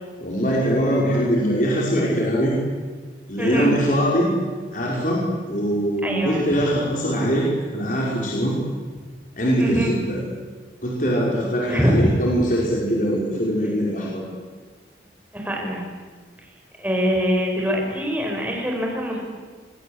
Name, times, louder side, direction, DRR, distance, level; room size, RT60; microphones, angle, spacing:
voice 1, 0.2-2.6 3.3-4.3 4.7-8.6 9.4-10.2 10.8-14.2, equal, 45° left, -4 dB, 5.4 m, -22 dB
voice 2, 3.4-3.7 6.0-6.4 9.6-9.9 11.7-12.1 15.3-15.9 16.8-19.2, equal, 10° right, 0 dB, 5.5 m, -23 dB
25.0 x 22.0 x 8.2 m, 1.5 s
head